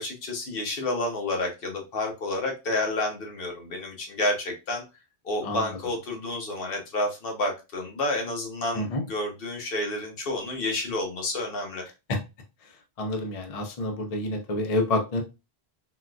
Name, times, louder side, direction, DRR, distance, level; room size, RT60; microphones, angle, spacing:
voice 1, 0.0-4.8 5.2-11.8, left 2 dB, 65° left, 2 dB, 1.0 m, -30 dB
voice 2, 5.4-5.8 8.7-9.0 12.1-12.2 12.6-15.2, left 2 dB, 45° left, 4 dB, 0.5 m, -28 dB
3.9 x 2.4 x 2.2 m, 0.27 s
omnidirectional pair, 1.1 m